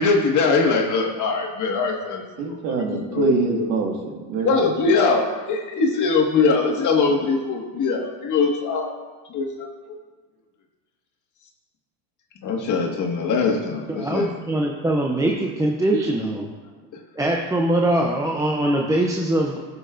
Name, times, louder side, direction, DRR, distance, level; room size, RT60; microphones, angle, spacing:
voice 1, 0.0-2.2 2.9-3.7 4.3-8.9 9.3-9.7 12.4-14.3, left 4 dB, 40° left, 1 dB, 1.8 m, -22 dB
voice 2, 2.4-4.6, right 4 dB, 70° right, 1 dB, 1.9 m, -25 dB
voice 3, 13.9-16.5 17.2-19.8, right 1 dB, 5° right, 0 dB, 0.6 m, -22 dB
14.5 x 6.8 x 2.6 m, 1.4 s
supercardioid pair, 110°, 47 cm